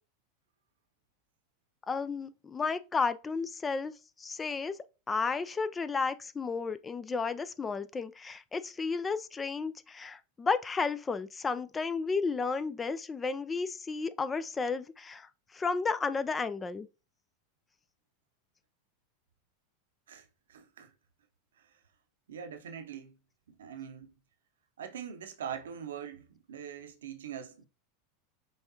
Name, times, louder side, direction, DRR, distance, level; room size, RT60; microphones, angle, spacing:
voice 1, 1.9-3.9 4.2-4.8 5.1-16.9, left 4 dB, 20° left, 0.3 m, -33 dB
voice 2, 20.1-20.9 21.6-21.7 22.3-23.2 23.5-24.1 24.8-27.7, right 8 dB, 65° right, 0.7 m, -43 dB
5.4 x 3.4 x 2.8 m
figure-of-eight pair, 85°, 0 cm